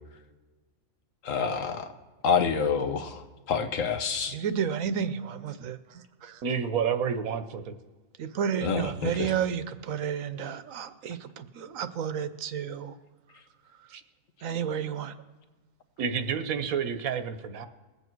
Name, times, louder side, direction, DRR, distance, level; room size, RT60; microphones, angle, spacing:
voice 1, 1.2-1.9 2.2-4.4 8.6-9.3, left 6 dB, 70° left, 8 dB, 1.4 m, -28 dB
voice 2, 4.3-6.4 8.2-13.0 14.4-15.1, right 8 dB, 75° right, 12 dB, 1.2 m, -31 dB
voice 3, 6.4-7.7 13.9-14.0 16.0-17.7, right 7 dB, 90° right, 10 dB, 1.3 m, -29 dB
21.0 x 8.3 x 4.6 m, 1.3 s
omnidirectional pair, 1.4 m